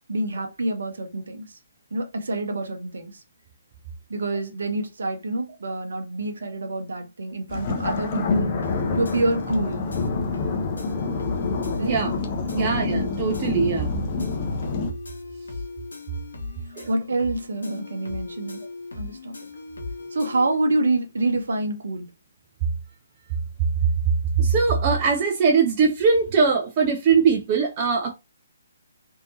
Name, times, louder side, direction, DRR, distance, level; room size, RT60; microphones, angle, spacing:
voice 1, 0.1-1.6 1.9-3.2 4.1-8.6 8.9-9.9 11.8-12.0 12.5-12.9 16.9-18.6 18.9-19.4 20.1-22.1, right 2 dB, 60° right, 0.8 m, -27 dB
sound 1, 7.5-14.9, left 3 dB, 30° left, 0.6 m, -27 dB
sound 2, 8.3-20.5, left 3 dB, 65° left, 0.8 m, -38 dB
voice 2, 11.8-12.2 12.5-14.0 16.7-16.9 24.4-28.1, right 5 dB, 30° right, 0.5 m, -21 dB
3.4 x 2.7 x 2.5 m
figure-of-eight pair, 135°, 0 cm